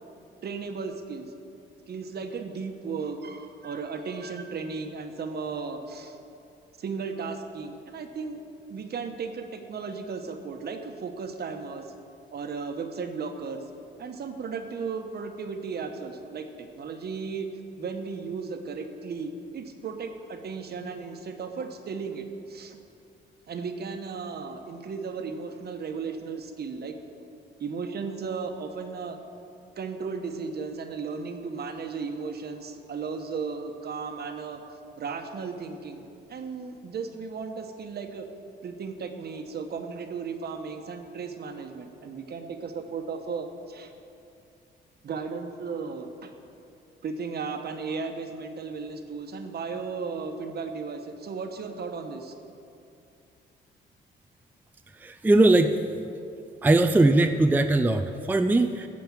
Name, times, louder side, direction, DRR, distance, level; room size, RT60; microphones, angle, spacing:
voice 1, 0.4-1.3 1.9-6.2 6.8-8.4 8.7-11.9 12.3-13.6 14.0-17.5 17.8-22.8 23.5-26.9 27.6-29.2 29.8-34.6 35.0-38.3 38.6-43.9 45.0-46.3 47.0-52.3, right 5 dB, 55° right, 6 dB, 1.2 m, -35 dB
voice 2, 55.0-55.8 56.6-58.9, right 2 dB, 10° right, 7 dB, 0.4 m, -20 dB
15.0 x 5.2 x 7.3 m, 2.6 s
cardioid pair, 90°, 20 cm